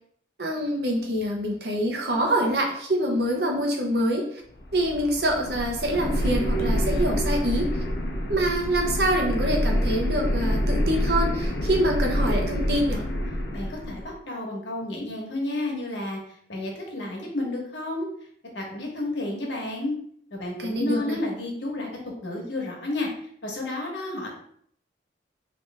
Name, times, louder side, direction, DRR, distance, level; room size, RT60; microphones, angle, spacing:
voice 1, 0.4-4.4 4.7-7.7 8.3-13.0 20.6-21.2, right 1 dB, 65° right, 0 dB, 0.8 m, -25 dB
sound 1, 4.5-14.1, equal, 70° left, 0.7 m, -27 dB
voice 2, 13.5-16.2 16.5-18.1 18.5-19.9 20.3-21.9 22.2-23.1 23.4-24.3, left 2 dB, 85° left, -1 dB, 1.1 m, -31 dB
3.2 x 3.0 x 3.3 m, 0.65 s
head